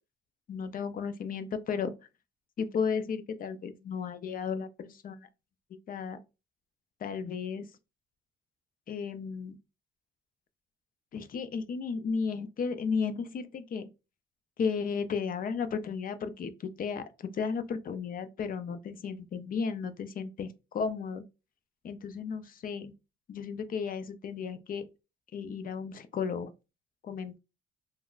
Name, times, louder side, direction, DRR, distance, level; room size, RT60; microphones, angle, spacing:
voice 1, 0.5-1.9 2.6-5.3 5.9-6.2 7.0-7.7 8.9-9.6 11.1-13.9 14.6-21.2 21.8-22.9 23.3-24.9 25.3-26.5 27.0-27.4, left 5 dB, 45° left, 0.5 m, -34 dB
3.4 x 2.1 x 2.4 m
cardioid pair, 90°, 20 cm